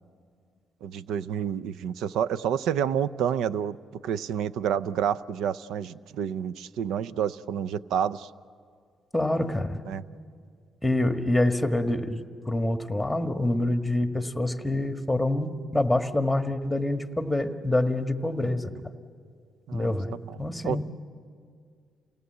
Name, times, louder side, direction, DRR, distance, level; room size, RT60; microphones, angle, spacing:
voice 1, 0.8-3.8 4.0-8.3 9.9-10.0 18.4-18.5 19.7-20.0 20.6-20.8, right 8 dB, 85° right, 17 dB, 0.5 m, -29 dB
voice 2, 9.1-9.8 10.8-18.7 19.7-20.8, left 1 dB, 5° left, 6 dB, 1.5 m, -26 dB
28.5 x 18.0 x 8.0 m, 2.1 s
cardioid pair, 90°, 0 cm